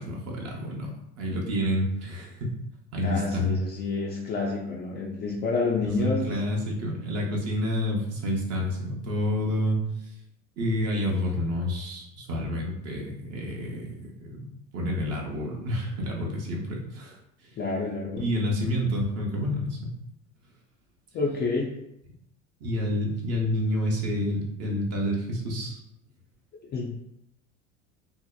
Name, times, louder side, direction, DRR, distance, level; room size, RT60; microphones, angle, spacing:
voice 1, 0.0-2.5 2.9-3.6 5.8-9.8 10.6-14.5 14.7-17.2 17.4-17.5 18.2-19.9 22.6-25.8, left 1 dB, 40° right, -1 dB, 0.7 m, -29 dB
voice 2, 3.0-6.4 17.6-18.2 21.1-21.8 26.7-26.9, left 3 dB, 25° left, -2 dB, 0.4 m, -28 dB
2.7 x 2.0 x 2.3 m, 0.80 s
hypercardioid pair, 85°, 39 cm